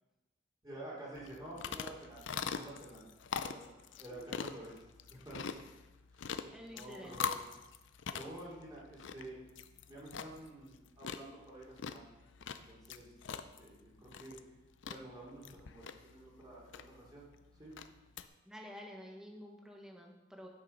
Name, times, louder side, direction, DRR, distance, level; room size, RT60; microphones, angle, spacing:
voice 1, 0.6-2.3 2.5-3.0 3.4-3.7 4.0-4.8 5.1-5.4 6.7-7.4 8.1-9.4 9.9-12.0 12.5-14.4 14.9-17.2 17.6-17.8, right 1 dB, 20° right, -7 dB, 3.3 m, -50 dB
sound 1, 1.2-18.3, left 6 dB, 70° left, 0.5 m, -44 dB
voice 2, 6.5-7.2 18.4-20.5, equal, 5° right, 0 dB, 1.3 m, -50 dB
11.0 x 6.6 x 5.2 m, 1.1 s
head